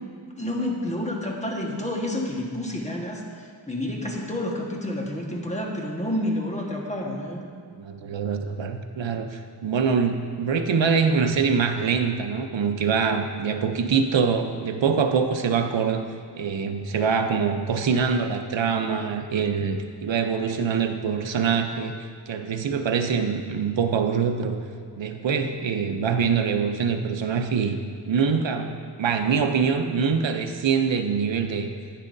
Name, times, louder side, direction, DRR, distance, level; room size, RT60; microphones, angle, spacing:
voice 1, 0.4-7.5, left 1 dB, 15° left, -1 dB, 1.3 m, -29 dB
voice 2, 7.7-16.1 16.4-22.0 22.3-24.6 25.0-27.8 28.1-31.7, right 6 dB, 90° right, 6 dB, 0.7 m, -24 dB
10.0 x 9.9 x 2.6 m, 2.2 s
wide cardioid pair, 80°, 43 cm